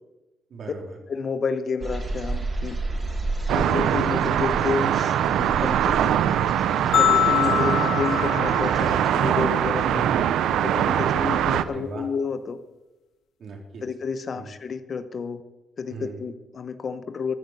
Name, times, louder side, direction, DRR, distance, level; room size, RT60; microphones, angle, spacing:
voice 1, 0.5-1.0 9.9-10.4 11.6-12.1 13.4-13.8 14.4-14.5 15.9-16.2, right 3 dB, 60° right, 1 dB, 3.6 m, -37 dB
voice 2, 1.1-2.8 3.5-6.2 7.0-10.0 10.5-12.6 13.8-15.4 15.8-17.3, left 5 dB, 45° left, 11 dB, 0.9 m, -30 dB
sound 1, 1.8-9.1, right 2 dB, 30° right, 3.8 m, -33 dB
sound 2, 3.5-11.6, right 10 dB, 85° right, 0.6 m, -22 dB
sound 3, 6.9-9.3, left 12 dB, 70° left, 0.4 m, -24 dB
14.0 x 8.0 x 8.3 m, 1.1 s
cardioid pair, 100°, 0 cm